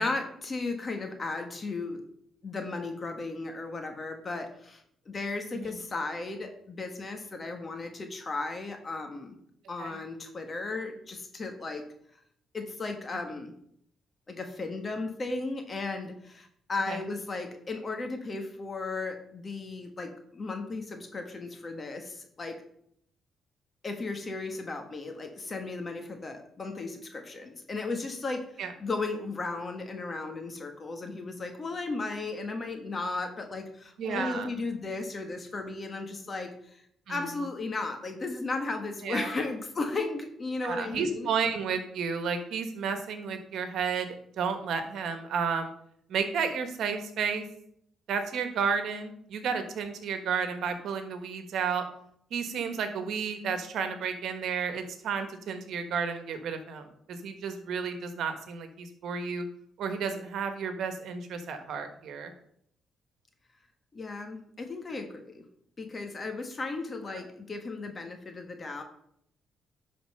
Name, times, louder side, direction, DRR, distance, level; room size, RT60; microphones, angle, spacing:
voice 1, 0.0-2.0 2.4-9.3 9.7-11.8 12.5-13.5 14.3-22.6 23.8-36.8 37.1-41.3 63.9-65.4 65.8-68.8, left 3 dB, 35° left, 5 dB, 1.5 m, -35 dB
voice 2, 34.0-34.5 37.1-37.2 39.0-39.3 40.6-44.1 44.4-45.7 46.1-47.4 48.1-51.8 52.3-59.4 59.8-62.3, right 6 dB, 75° right, 8 dB, 1.3 m, -32 dB
11.0 x 4.3 x 5.4 m, 0.70 s
cardioid pair, 90°, 0 cm